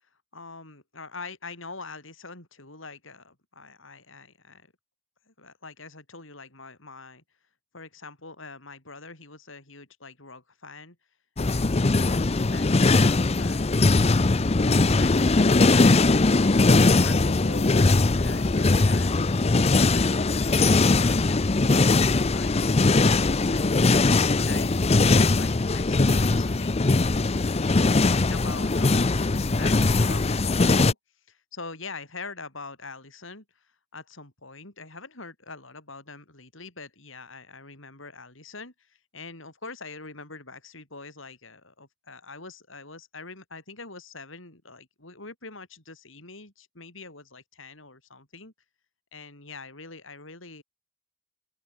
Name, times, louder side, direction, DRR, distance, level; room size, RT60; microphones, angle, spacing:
voice 1, 0.3-4.7 5.3-7.2 7.7-11.0 11.4-13.8 14.1-16.7 17.0-24.0 24.4-27.1 28.0-31.0 31.3-48.5 49.1-50.6, left 3 dB, 70° left, 7.8 m, -44 dB
sound 1, 11.4-30.9, left 3 dB, 30° left, 0.6 m, -21 dB
open air
head